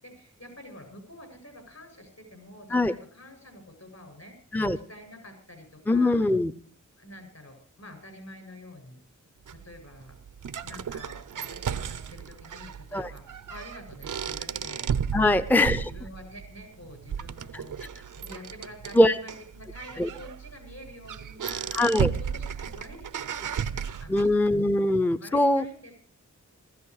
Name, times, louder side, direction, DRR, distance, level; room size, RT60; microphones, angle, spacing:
voice 1, 0.0-4.4 4.9-6.3 7.0-9.0 9.5-10.1 10.6-14.9 15.2-21.7 22.3-24.3 25.2-26.0, left 1 dB, 55° left, 6 dB, 7.4 m, -47 dB
voice 2, 5.9-6.5 12.9-13.1 15.1-15.9 18.9-19.2 20.0-20.1 21.7-22.1 24.1-25.6, left 1 dB, 5° left, 11 dB, 0.7 m, -22 dB
sound 1, 9.5-24.5, right 7 dB, 75° right, 0.8 m, -34 dB
17.0 x 15.0 x 4.8 m, 0.42 s
wide cardioid pair, 75°, 31 cm